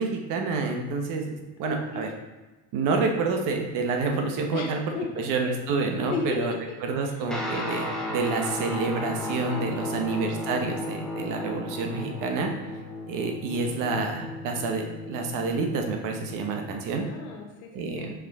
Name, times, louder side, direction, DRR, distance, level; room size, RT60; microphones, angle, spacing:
voice 1, 0.0-1.3 1.6-2.1 2.7-4.8 5.2-6.5 6.8-12.5 13.1-17.0 17.7-18.1, right 4 dB, 50° right, 3 dB, 1.0 m, -28 dB
voice 2, 1.6-2.1 4.5-5.2 6.1-6.6 7.0-7.3 9.5-10.1 16.9-18.1, left 4 dB, 85° left, 1 dB, 1.5 m, -35 dB
Guitar, 7.3-16.9, left 2 dB, ahead, 0.8 m, -35 dB
5.6 x 5.0 x 3.5 m, 1.2 s
cardioid pair, 145°, 40 cm